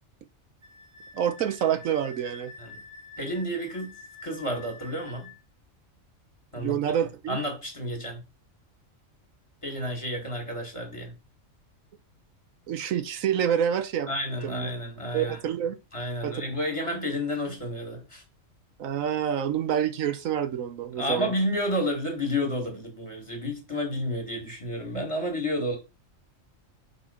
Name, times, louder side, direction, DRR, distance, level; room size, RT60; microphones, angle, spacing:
Wind instrument woodwind instrument, 0.6-5.4, left 3 dB, 70° right, 1.6 m, -47 dB
voice 1, 1.1-2.5 6.6-7.4 12.7-14.1 14.4-14.7 15.1-15.8 16.2-16.4 18.8-21.3, right 9 dB, 85° right, 1.2 m, -27 dB
voice 2, 3.2-3.9 4.2-5.3 6.5-6.8 7.3-8.2 9.6-11.1 14.1-15.4 15.9-18.2 21.0-25.8, left 1 dB, 25° left, 2.0 m, -30 dB
5.2 x 4.1 x 5.6 m
omnidirectional pair, 1.4 m